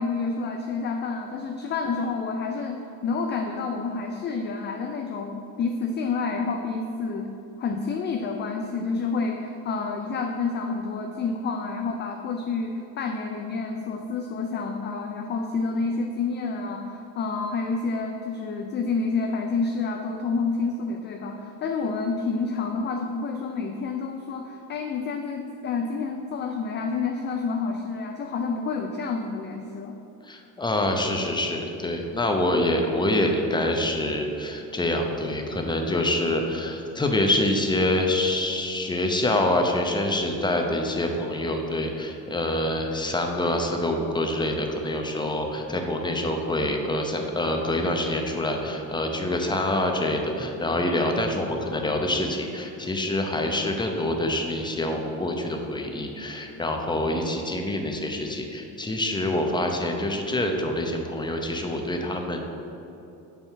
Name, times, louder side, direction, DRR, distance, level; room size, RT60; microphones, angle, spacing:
voice 1, 0.0-30.0, left 4 dB, 25° left, 3 dB, 0.3 m, -29 dB
voice 2, 30.2-62.4, left 1 dB, 10° left, 3 dB, 0.7 m, -26 dB
5.8 x 4.3 x 5.6 m, 2.9 s
hypercardioid pair, 75°, 49 cm